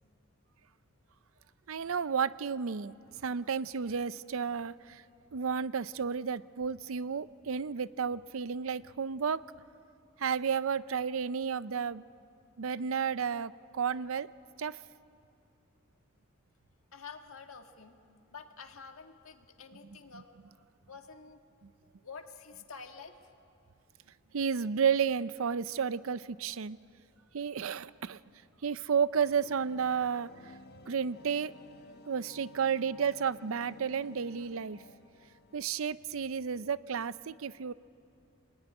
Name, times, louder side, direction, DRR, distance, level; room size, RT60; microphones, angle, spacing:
voice 1, 1.7-2.9 3.2-5.0 5.3-9.4 10.2-12.0 12.6-14.3 14.6-14.8 20.1-20.2 24.3-26.8 27.3-28.2 28.6-30.3 30.9-31.5 32.1-34.8 35.5-37.7, right 6 dB, 70° right, 16 dB, 0.5 m, -32 dB
voice 2, 16.9-18.0 18.3-20.3 20.9-21.4 22.0-23.3, left 5 dB, 75° left, 5 dB, 1.8 m, -48 dB
sound 1, 29.2-36.1, left 2 dB, 50° left, 1.1 m, -55 dB
25.5 x 20.0 x 9.8 m, 2.6 s
head